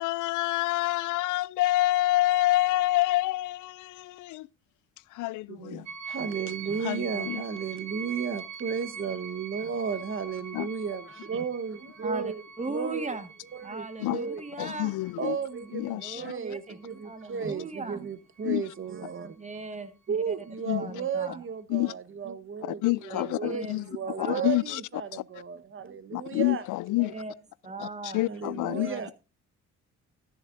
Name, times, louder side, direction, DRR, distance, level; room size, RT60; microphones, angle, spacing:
voice 1, 0.0-4.5 5.1-5.9 6.8-7.4 10.5-10.7 14.0-14.2 14.6-15.4 15.7-16.3 18.4-18.6 20.7-20.9 21.7-21.9 22.6-23.8 24.2-24.8 25.1-25.2 26.1-27.1 27.8-28.9, left 17 dB, 80° left, 0.5 m, -27 dB
voice 2, 5.5-12.4 12.7-13.1 13.5-14.4 15.2-19.4 20.1-26.6 28.3-29.1, right 6 dB, 45° right, 1.2 m, -34 dB
sound 1, 5.9-17.8 18.4-19.2, right 6 dB, 60° right, 1.9 m, -43 dB
voice 3, 12.0-13.3 13.6-15.0 15.9-16.8 17.0-18.1 19.4-19.9 20.3-20.4 20.8-21.4 23.1-23.7 24.2-24.5 27.0-27.3 27.6-28.3 28.7-29.1, right 3 dB, 25° right, 1.7 m, -38 dB
13.5 x 10.5 x 2.6 m
cardioid pair, 90°, 30 cm